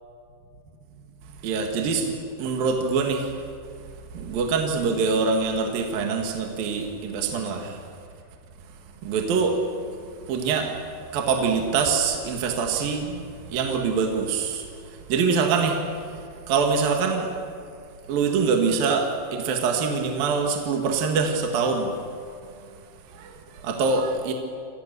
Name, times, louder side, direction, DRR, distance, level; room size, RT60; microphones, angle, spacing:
voice 1, 1.4-3.3 4.1-7.8 9.0-9.6 10.3-10.7 11.1-14.6 15.1-15.8 16.5-17.3 18.1-21.9 23.2-23.3 23.6-24.3, right 5 dB, 55° right, 3 dB, 3.4 m, -24 dB
29.5 x 27.0 x 6.9 m, 2.3 s
omnidirectional pair, 5.4 m